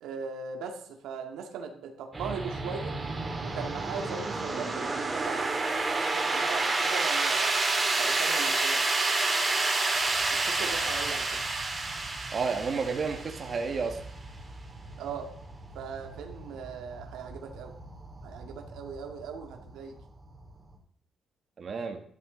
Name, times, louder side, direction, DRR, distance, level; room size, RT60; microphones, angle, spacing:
voice 1, 0.0-3.0 3.4-5.6 6.0-7.5 8.0-8.8 10.3-11.4 15.0-15.3 15.7-17.7 18.2-20.0, right 6 dB, 90° right, 3 dB, 2.1 m, -39 dB
sound 1, 2.1-20.8, right 3 dB, 25° right, 3.2 m, -30 dB
voice 2, 12.3-14.0 21.6-22.0, right 5 dB, 45° right, 4 dB, 1.9 m, -31 dB
13.0 x 11.0 x 4.0 m, 0.62 s
cardioid pair, 90°, 0 cm